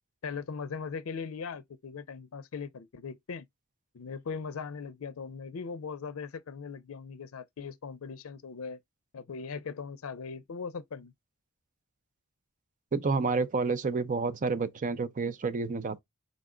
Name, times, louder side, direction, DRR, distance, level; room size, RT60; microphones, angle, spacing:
voice 1, 0.2-3.5 3.9-8.8 9.1-11.1, left 5 dB, 80° left, 0.5 m, -39 dB
voice 2, 12.9-16.0, right 4 dB, 40° right, 0.5 m, -29 dB
5.3 x 2.2 x 3.7 m
head